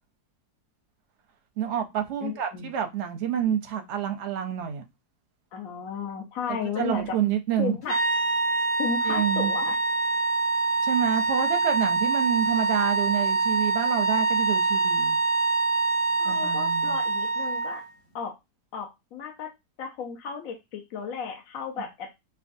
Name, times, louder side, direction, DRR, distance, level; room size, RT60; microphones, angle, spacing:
voice 1, 1.6-4.8 6.8-7.8 9.1-9.5 10.8-15.2 16.2-17.0, right 9 dB, 60° right, 0.8 m, -28 dB
voice 2, 2.2-2.7 5.5-7.2 7.6-8.0 8.8-9.8 16.2-17.8 18.1-18.4 18.7-19.5 19.8-22.2, left 6 dB, 60° left, 1.1 m, -34 dB
sound 1, 7.9-17.8, right 3 dB, 35° left, 1.2 m, -25 dB
5.5 x 2.3 x 2.6 m
omnidirectional pair, 1.8 m